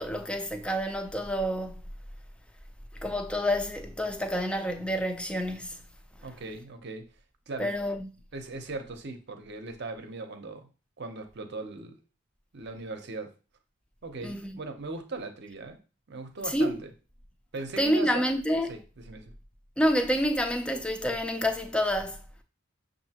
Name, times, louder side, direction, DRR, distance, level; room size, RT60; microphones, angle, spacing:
voice 1, 0.0-1.8 3.0-5.8 7.6-8.1 14.2-14.5 16.5-16.8 17.8-18.7 19.8-22.2, equal, 5° left, 0.4 m, -28 dB
voice 2, 6.2-7.1 7.5-7.7 8.3-10.7 11.0-12.0 12.5-13.3 14.0-15.8 16.1-16.9 17.5-18.3 18.7-19.3, right 3 dB, 55° right, 0.7 m, -39 dB
6.4 x 2.6 x 2.8 m
head